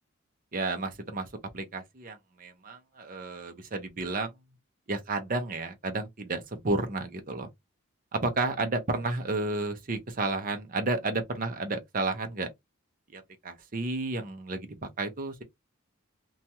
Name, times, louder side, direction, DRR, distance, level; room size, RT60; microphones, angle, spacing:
voice 1, 0.5-1.3 1.5-4.3 4.9-7.5 8.1-12.5 13.1-14.7 15.0-15.4, right 2 dB, 40° right, 0.6 m, -32 dB
2.8 x 2.3 x 2.8 m
head